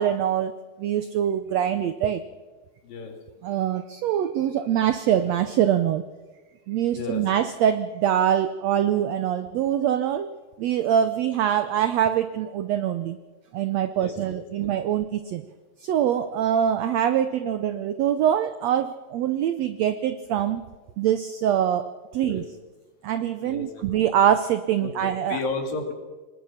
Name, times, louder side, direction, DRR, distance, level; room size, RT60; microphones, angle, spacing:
voice 1, 0.0-2.2 3.4-6.0 6.7-10.3 10.6-13.2 13.5-15.4 15.8-20.6 21.0-22.4 23.0-25.4, right 10 dB, 85° right, 11 dB, 1.5 m, -24 dB
voice 2, 2.8-3.1 6.9-7.2 14.0-14.7 22.2-22.4 23.4-23.8 24.8-25.9, left 4 dB, 75° left, 4 dB, 4.3 m, -33 dB
25.0 x 20.0 x 5.8 m, 1.3 s
omnidirectional pair, 4.0 m